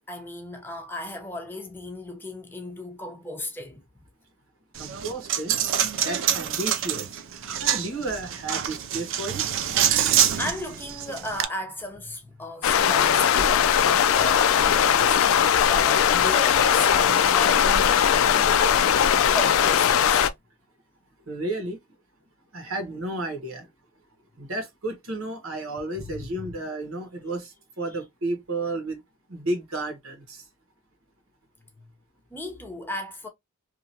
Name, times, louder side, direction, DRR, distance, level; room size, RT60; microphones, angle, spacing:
voice 1, 0.0-3.8 10.4-18.9 19.3-20.3 26.0-26.5 31.8-31.9 32.3-33.3, left 2 dB, 10° left, 0.6 m, -35 dB
Coin (dropping), 4.8-11.5, right 10 dB, 65° right, 0.4 m, -26 dB
voice 2, 4.8-5.6 5.9-7.1 7.6-9.4 21.3-21.8 22.5-23.7 24.4-29.0 29.3-30.4, right 2 dB, 85° right, 1.2 m, -32 dB
sound 1, 12.6-20.3, left 8 dB, 75° left, 0.3 m, -19 dB
2.9 x 2.5 x 2.7 m
head